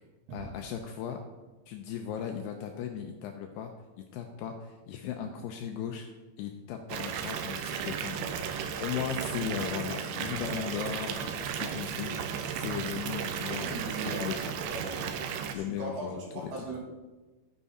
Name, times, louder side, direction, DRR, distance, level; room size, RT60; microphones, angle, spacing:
voice 1, 0.3-1.2 1.7-3.7 4.0-6.1 6.4-14.4 15.5-16.5, left 8 dB, 85° left, 4 dB, 2.4 m, -37 dB
Water tap faucet / Bathtub (filling or washing) / Fill (with liquid), 6.9-15.5, right 7 dB, 80° right, 2.8 m, -34 dB
voice 2, 13.5-14.3 14.7-16.8, right 2 dB, 60° right, -2 dB, 4.2 m, -39 dB
12.5 x 9.3 x 4.2 m, 1.2 s
omnidirectional pair, 5.4 m